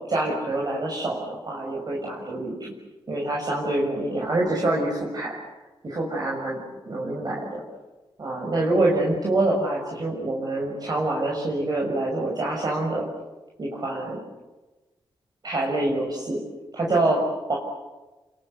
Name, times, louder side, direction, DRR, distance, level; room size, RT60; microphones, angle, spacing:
voice 1, 0.1-2.7 3.1-5.3 5.8-6.6 6.8-7.6 8.2-13.1 13.6-14.2 15.4-16.4 16.7-17.2 17.5-17.6, right 2 dB, 45° right, -2 dB, 6.6 m, -26 dB
30.0 x 24.0 x 8.2 m, 1.1 s
cardioid pair, 95°, 9 cm